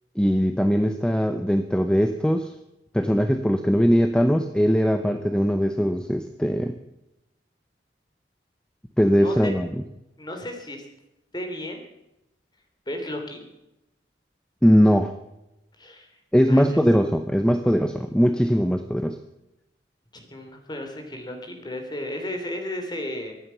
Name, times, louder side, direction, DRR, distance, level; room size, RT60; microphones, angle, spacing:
voice 1, 0.2-2.5 2.9-6.8 9.0-9.7 14.6-15.1 16.3-19.2, equal, 5° left, 7 dB, 0.8 m, -20 dB
voice 2, 9.2-9.6 10.2-10.8 11.3-11.8 12.9-13.4 15.8-16.1 16.5-16.6 20.1-23.3, left 1 dB, 25° left, 4 dB, 3.1 m, -34 dB
23.5 x 9.4 x 5.7 m, 0.90 s
head